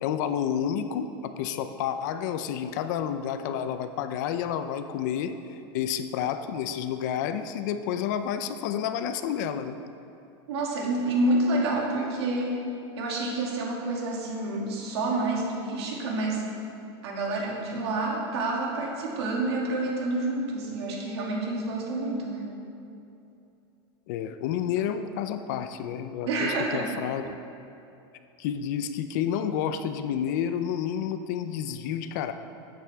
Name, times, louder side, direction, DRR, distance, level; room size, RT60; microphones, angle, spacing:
voice 1, 0.0-9.8 24.1-27.2 28.4-32.3, left 9 dB, 45° left, 10 dB, 0.5 m, -30 dB
voice 2, 10.5-12.6 13.0-16.5 17.0-22.6 26.2-26.9, right 2 dB, 80° right, -2 dB, 2.4 m, -28 dB
13.0 x 8.7 x 3.5 m, 2.8 s
supercardioid pair, 180°, 14 cm